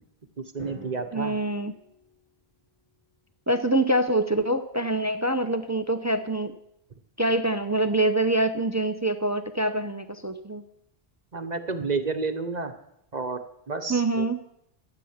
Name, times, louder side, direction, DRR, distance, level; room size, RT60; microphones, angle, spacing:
voice 1, 0.5-1.4 11.3-12.7 13.1-13.4 13.7-14.3, right 4 dB, 45° right, 7 dB, 1.0 m, -30 dB
Drum, 0.6-2.7, equal, 60° left, 6.5 m, -48 dB
voice 2, 1.1-1.7 3.5-6.5 7.2-10.6 13.9-14.4, right 2 dB, 20° right, 10 dB, 0.6 m, -25 dB
13.5 x 9.1 x 7.2 m, 0.77 s
omnidirectional pair, 1.0 m